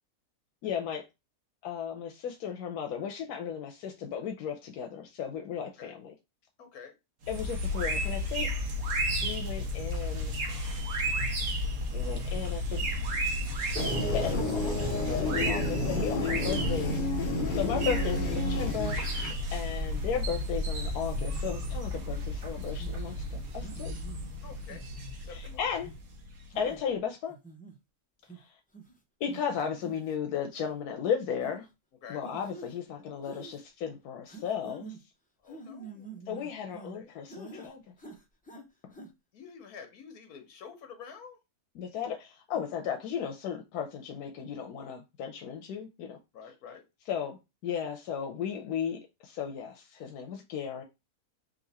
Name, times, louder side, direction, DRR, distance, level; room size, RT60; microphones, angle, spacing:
voice 1, 0.6-1.0 1.6-6.1 7.3-8.5 9.2-10.4 11.9-12.8 14.1-19.0 19.5-24.0 25.3-25.9 26.5-27.4 28.4-28.5 29.2-31.7 32.1-34.9 36.3-37.9 41.7-46.5 47.1-50.8, left 7 dB, 90° left, 1.2 m, -35 dB
voice 2, 6.6-6.9 24.4-24.8 25.2-25.6 32.0-32.2 35.4-36.2 36.9-37.1 39.3-41.4 46.3-46.8, left 6 dB, 75° left, 1.4 m, -48 dB
sound 1, 7.2-26.7, equal, 70° right, 1.3 m, -33 dB
sound 2, 13.8-19.3, left 2 dB, 45° left, 0.7 m, -31 dB
sound 3, 22.8-23.0 23.6-24.2 24.7-25.2 25.7-26.0 26.5-26.8 27.3-27.7 28.3-28.4 28.7-28.9 29.3-29.4 29.8-30.2 30.5-30.7 31.4-31.6 32.2-32.7 33.2-33.6 34.3-35.0 35.5-37.0 37.3-37.7 38.0-38.6 38.9-39.1, right 4 dB, 10° left, 0.5 m, -46 dB
3.8 x 2.7 x 4.1 m
omnidirectional pair, 1.6 m